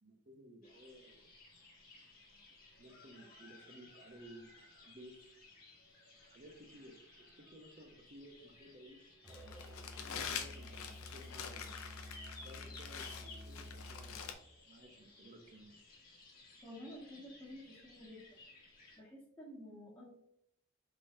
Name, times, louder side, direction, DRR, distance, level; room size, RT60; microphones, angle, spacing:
voice 1, 0.0-1.3 2.8-4.5 4.8-5.1 6.2-7.0 7.4-9.7 9.9-11.7 12.4-14.2 14.7-15.8, equal, 40° right, 5 dB, 0.7 m, -56 dB
sound 1, 0.6-19.0, left 2 dB, 45° left, 1.4 m, -59 dB
Musical instrument, 9.2-14.4, left 1 dB, 5° right, 0.6 m, -51 dB
Crumpling crinkling, 9.3-14.3, left 7 dB, 90° left, 0.5 m, -46 dB
voice 2, 16.6-18.4 18.9-20.1, equal, 20° left, -8 dB, 1.2 m, -51 dB
4.7 x 3.7 x 2.7 m, 0.76 s
head